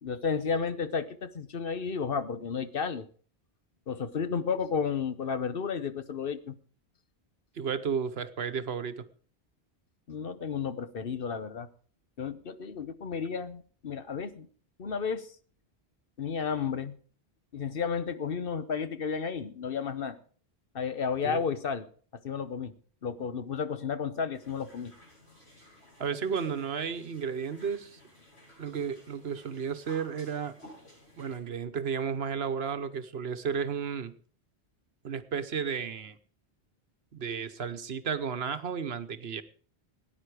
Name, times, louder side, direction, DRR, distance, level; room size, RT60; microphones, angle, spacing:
voice 1, 0.0-3.1 3.9-6.5 10.1-11.7 12.2-14.5 14.8-15.3 16.2-17.0 17.5-20.2 20.7-21.9 22.2-22.7 23.0-24.9, left 6 dB, 60° left, 12 dB, 1.1 m, -32 dB
voice 2, 7.5-9.1 21.2-21.4 26.0-28.0 28.6-30.6 31.2-34.2 35.0-36.2 37.1-39.4, right 6 dB, 75° right, 11 dB, 1.2 m, -33 dB
sound 1, 24.3-31.4, left 1 dB, 80° left, 7.2 m, -56 dB
18.0 x 9.9 x 4.9 m, 0.43 s
omnidirectional pair, 1.1 m